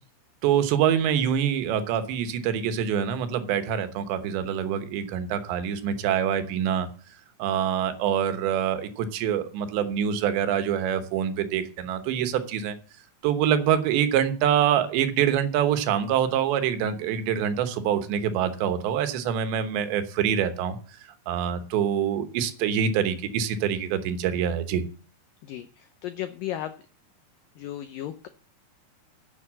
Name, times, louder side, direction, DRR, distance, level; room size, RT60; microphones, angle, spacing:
voice 1, 0.4-6.9 7.4-12.7 13.2-20.8 21.3-24.8, right 9 dB, 85° right, 9 dB, 3.4 m, -25 dB
voice 2, 25.4-26.7 27.6-28.3, left 12 dB, 85° left, 10 dB, 1.9 m, -35 dB
11.0 x 7.9 x 7.6 m, 0.40 s
omnidirectional pair, 4.9 m